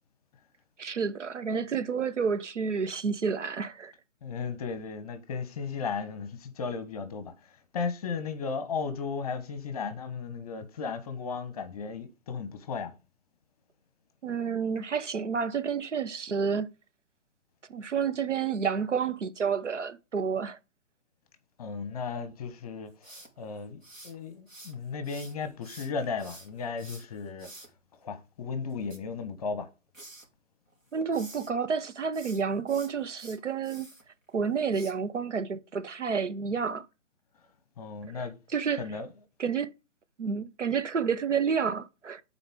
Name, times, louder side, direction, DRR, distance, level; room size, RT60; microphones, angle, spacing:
voice 1, 0.8-3.9 14.2-16.7 17.7-20.6 30.9-33.9 34.3-36.8 38.1-38.8 39.4-39.7 40.2-42.2, right 6 dB, 65° right, 0.9 m, -30 dB
voice 2, 4.2-12.9 21.6-27.5 27.9-29.7 37.8-38.4 38.8-39.1, left 5 dB, 30° left, 1.0 m, -35 dB
sound 1, 23.0-24.8 25.0-27.7 28.7-29.7 29.9-30.3 30.7-31.5 32.0-34.0 34.7-34.9, right 2 dB, 85° right, 2.5 m, -49 dB
9.1 x 4.1 x 3.6 m
figure-of-eight pair, 135°, 38 cm